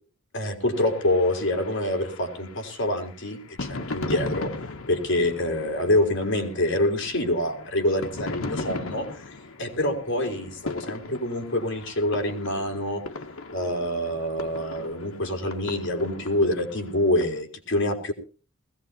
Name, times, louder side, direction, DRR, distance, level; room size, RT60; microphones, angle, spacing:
voice 1, 0.3-4.5 4.9-9.1 9.6-13.0 13.5-18.1, left 1 dB, 60° left, 3 dB, 4.2 m, -26 dB
sound 1, 0.7-17.4, left 2 dB, 80° left, 1.3 m, -38 dB
21.0 x 17.0 x 2.8 m, 0.37 s
head